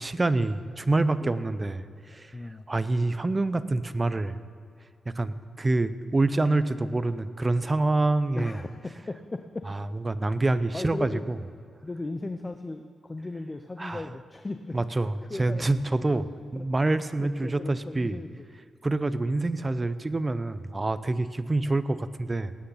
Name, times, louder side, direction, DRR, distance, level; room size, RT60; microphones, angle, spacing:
voice 1, 0.0-2.3 2.7-4.4 5.1-8.6 9.7-11.4 13.8-14.0 14.7-18.2 18.8-22.5, right 2 dB, 25° right, 13 dB, 0.6 m, -26 dB
voice 2, 2.3-2.6 8.4-9.7 10.7-11.2 11.8-14.8 15.3-15.6 16.5-16.7 17.2-18.4, left 2 dB, 25° left, 7 dB, 0.6 m, -37 dB
18.5 x 9.2 x 5.7 m, 2.3 s
cardioid pair, 85°, 0 cm